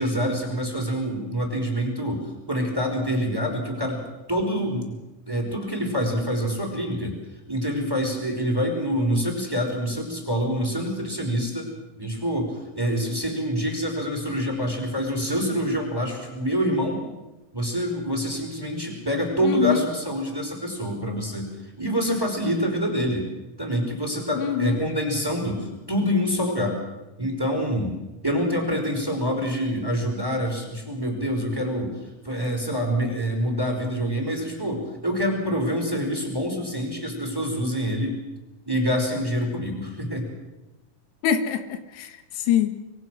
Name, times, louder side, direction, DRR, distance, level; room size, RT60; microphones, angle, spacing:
voice 1, 0.0-4.0 4.3-4.9 5.3-7.2 7.5-11.7 12.0-17.0 17.5-21.5 21.8-23.3 23.6-26.8 27.2-27.9 28.2-31.9 32.2-38.2 38.7-40.3, equal, 5° right, 2 dB, 4.5 m, -26 dB
voice 2, 19.4-19.9 24.4-24.8 41.2-42.7, left 9 dB, 90° left, 8 dB, 3.5 m, -24 dB
26.5 x 22.0 x 6.3 m, 1.1 s
omnidirectional pair, 4.6 m